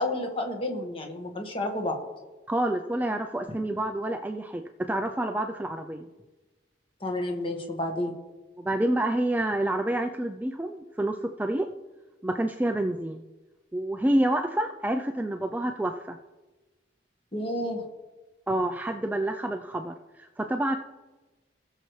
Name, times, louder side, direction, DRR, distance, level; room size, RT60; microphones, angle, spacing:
voice 1, 0.0-2.0 7.0-8.1 17.3-17.9, left 1 dB, 30° left, 2 dB, 1.5 m, -30 dB
voice 2, 2.5-4.6 4.9-6.1 8.6-11.7 12.2-13.2 13.7-16.2 18.5-20.8, right 1 dB, 10° right, 5 dB, 0.3 m, -28 dB
19.0 x 6.7 x 3.2 m, 1.2 s
head